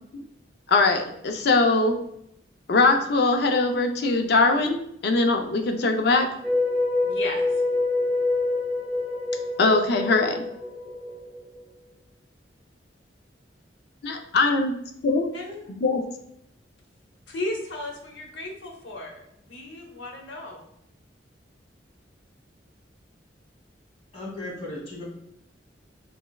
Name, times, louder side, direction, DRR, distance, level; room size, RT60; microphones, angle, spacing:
voice 1, 0.7-2.0 2.7-6.3 9.6-10.4 14.0-14.8 15.0-15.3 15.7-16.0, left 3 dB, 60° left, 5 dB, 0.4 m, -21 dB
sound 1, 6.4-11.6, left 2 dB, 10° right, 0.5 m, -26 dB
voice 2, 7.0-7.6 15.3-15.7 17.3-20.7, left 2 dB, 90° left, 1 dB, 0.7 m, -35 dB
voice 3, 24.1-25.0, left 1 dB, 35° left, -6 dB, 1.4 m, -36 dB
3.3 x 3.1 x 2.2 m, 0.76 s
head